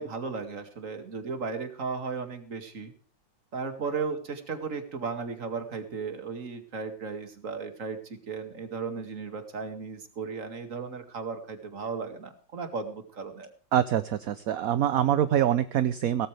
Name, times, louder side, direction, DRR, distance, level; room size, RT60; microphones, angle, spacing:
voice 1, 0.0-2.9 3.5-13.5, right 5 dB, 45° right, 8 dB, 2.4 m, -35 dB
voice 2, 13.7-16.3, right 10 dB, 60° right, 13 dB, 1.0 m, -25 dB
17.5 x 14.0 x 3.3 m, 0.44 s
omnidirectional pair, 2.0 m